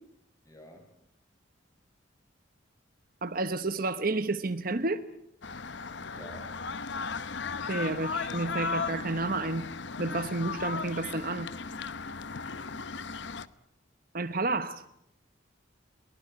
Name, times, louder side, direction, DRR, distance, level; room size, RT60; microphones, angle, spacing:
voice 1, 0.5-0.9 6.1-6.7 12.2-12.8, equal, 15° left, 5.2 m, -50 dB
voice 2, 3.2-5.0 7.7-9.7 10.0-11.5 14.1-14.8, right 3 dB, 45° right, 1.0 m, -30 dB
sound 1, 5.4-13.5, left 4 dB, 60° left, 1.0 m, -36 dB
22.5 x 20.0 x 9.8 m
head